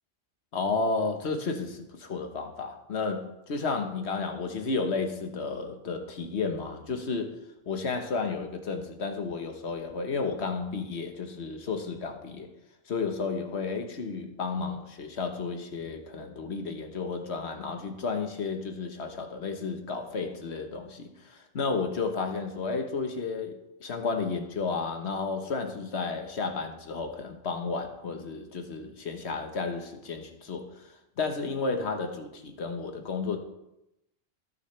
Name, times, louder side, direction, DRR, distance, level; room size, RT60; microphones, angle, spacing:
voice 1, 0.5-7.4 7.6-12.5 12.9-30.9 31.2-33.4, left 4 dB, 80° left, 5 dB, 1.5 m, -32 dB
18.5 x 7.0 x 3.3 m, 0.89 s
omnidirectional pair, 1.1 m